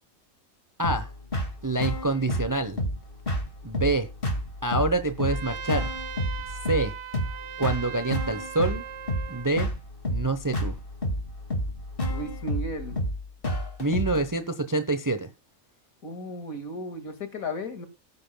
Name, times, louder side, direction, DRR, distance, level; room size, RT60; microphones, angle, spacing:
sound 1, 0.8-14.2, equal, 40° left, 2.3 m, -30 dB
voice 1, 0.8-1.1 1.6-2.8 3.6-4.1 4.6-5.9 6.7-6.9 7.6-8.8 9.3-9.7 10.1-10.7 13.8-15.3, right 2 dB, 20° right, 0.7 m, -26 dB
Trumpet, 5.2-9.5, right 9 dB, 60° right, 1.0 m, -39 dB
voice 2, 12.1-13.0 16.0-17.9, left 1 dB, 80° left, 2.5 m, -35 dB
18.0 x 9.6 x 2.2 m
omnidirectional pair, 1.4 m